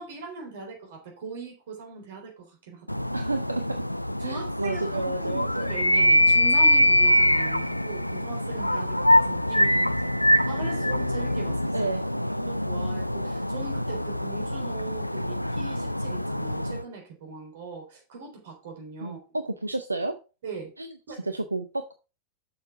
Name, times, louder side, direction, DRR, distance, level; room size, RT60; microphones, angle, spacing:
voice 1, 0.0-3.0 4.2-11.9 12.4-19.2 20.4-20.7 21.1-21.2, right 4 dB, 55° right, 3.6 m, -40 dB
sound 1, 2.9-16.8, left 1 dB, 90° left, 0.3 m, -24 dB
voice 2, 3.1-3.6 4.2-5.7 11.7-12.3 19.0-20.2 20.8-21.9, right 2 dB, 85° right, 0.6 m, -31 dB
7.2 x 6.7 x 4.7 m
figure-of-eight pair, 90°, 0 cm